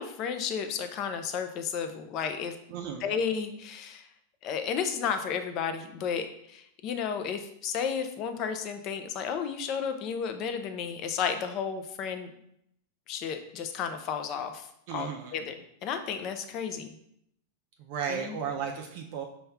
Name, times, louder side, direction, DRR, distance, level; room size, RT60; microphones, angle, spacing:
voice 1, 0.0-2.6 3.0-4.1 4.4-12.3 13.1-16.9 18.1-18.4, left 7 dB, 35° left, 7 dB, 0.4 m, -33 dB
voice 2, 2.7-3.1 14.9-15.3 17.8-19.3, right 7 dB, 50° right, 1 dB, 0.4 m, -34 dB
5.5 x 2.3 x 3.4 m, 0.75 s
supercardioid pair, 155°, 0 cm